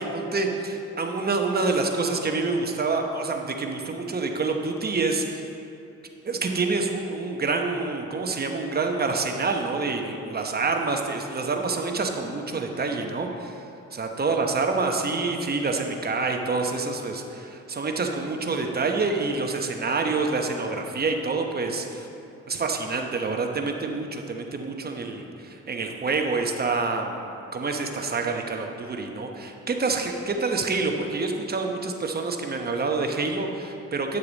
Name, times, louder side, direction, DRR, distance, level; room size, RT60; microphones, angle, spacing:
voice 1, 0.0-5.4 6.2-13.6 13.9-22.1 22.5-34.2, right 3 dB, 30° right, 3 dB, 0.9 m, -27 dB
10.5 x 6.6 x 4.0 m, 2.8 s
cardioid pair, 90°, 30 cm